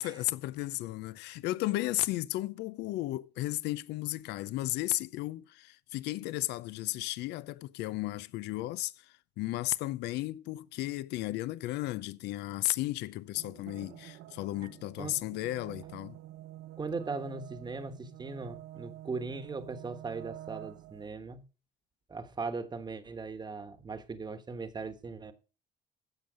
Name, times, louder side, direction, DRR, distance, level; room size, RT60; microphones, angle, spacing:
voice 1, 0.0-16.2, left 17 dB, 85° left, 0.6 m, -34 dB
sound 1, 13.3-21.1, right 14 dB, 75° right, 0.8 m, -48 dB
voice 2, 16.8-21.4 22.1-25.3, right 4 dB, 25° right, 1.2 m, -39 dB
15.5 x 5.6 x 5.0 m
cardioid pair, 110°, 17 cm